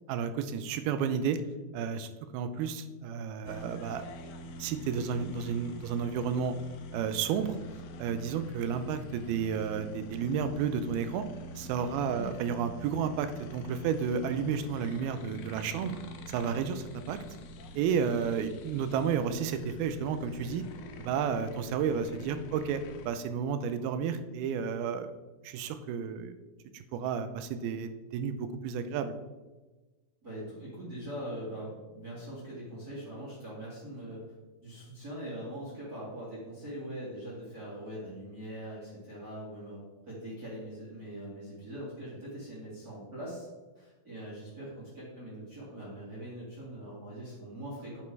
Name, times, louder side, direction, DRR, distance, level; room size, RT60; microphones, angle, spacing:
voice 1, 0.1-1.4 1.7-4.0 4.6-6.6 6.9-7.6 8.0-11.2 11.6-16.0 16.3-17.2 17.8-20.6 21.0-25.1 25.4-26.4 26.7-29.2, right 7 dB, 85° right, 10 dB, 2.5 m, -32 dB
sound 1, 3.4-23.1, equal, 85° left, 1.7 m, -45 dB
voice 2, 11.9-12.3 30.2-34.2 34.6-39.8 40.1-43.5 43.8-48.0, right 1 dB, 30° right, -8 dB, 2.0 m, -42 dB
8.3 x 5.2 x 4.6 m, 1.2 s
omnidirectional pair, 4.3 m